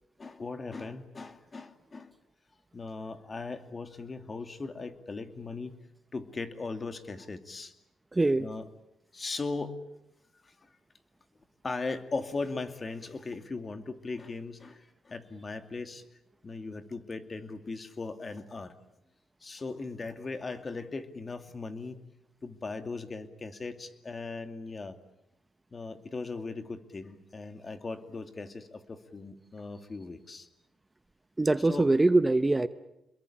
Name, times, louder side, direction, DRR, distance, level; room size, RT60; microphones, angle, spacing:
voice 1, 0.2-2.1 2.7-5.8 6.1-7.7 8.2-8.7 9.1-9.7 10.4-10.7 11.6-16.0 16.4-18.7 19.4-22.0 22.4-25.0 25.7-30.5 31.6-31.9, left 3 dB, 30° left, 8 dB, 2.5 m, -38 dB
voice 2, 8.1-8.5 31.4-32.7, right 2 dB, 15° right, 12 dB, 0.9 m, -23 dB
27.5 x 22.0 x 8.7 m, 0.88 s
cardioid pair, 90°, 0 cm